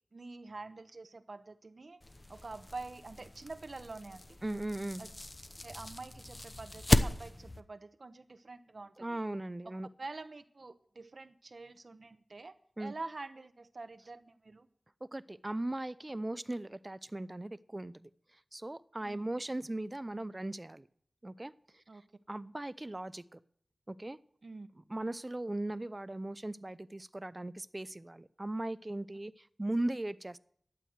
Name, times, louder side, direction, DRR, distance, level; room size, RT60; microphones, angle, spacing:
voice 1, 0.1-2.0 2.3-4.4 5.0-5.1 5.6-9.2 10.0-14.7 19.0-19.3 21.9-22.0 24.4-24.7, right 3 dB, 60° right, 11 dB, 0.9 m, -46 dB
sound 1, 2.0-7.6, left 1 dB, 30° left, 0.9 m, -35 dB
voice 2, 4.4-5.0 9.0-9.9 12.8-12.9 15.0-18.1 18.5-20.9 21.2-21.8 22.3-23.4 23.9-24.2 24.9-30.4, right 1 dB, 30° right, 16 dB, 0.6 m, -38 dB
12.0 x 8.5 x 7.9 m, 0.62 s
wide cardioid pair, 65°, 0 cm